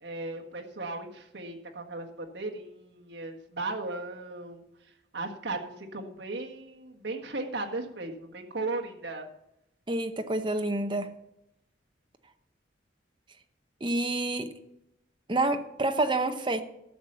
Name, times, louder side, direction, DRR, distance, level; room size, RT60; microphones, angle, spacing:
voice 1, 0.0-4.6 5.1-9.3, right 2 dB, 65° right, 2 dB, 1.6 m, -36 dB
voice 2, 9.9-11.1 13.8-14.5 15.3-16.6, right 2 dB, 25° right, 6 dB, 0.9 m, -28 dB
13.0 x 6.6 x 6.8 m, 0.83 s
head